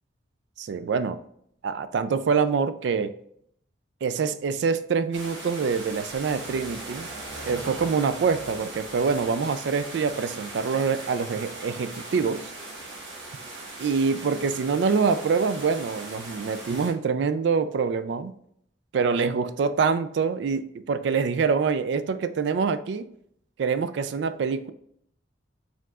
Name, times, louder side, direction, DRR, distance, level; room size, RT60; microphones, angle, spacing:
voice 1, 0.6-1.2 1.6-3.1 4.0-7.1 7.5-12.5 13.8-18.4 18.9-23.1 23.6-24.7, right 5 dB, 65° right, 12 dB, 0.3 m, -25 dB
sound 1, 5.1-16.9, right 2 dB, 85° right, 1.3 m, -39 dB
4.7 x 3.6 x 2.4 m, 0.69 s
head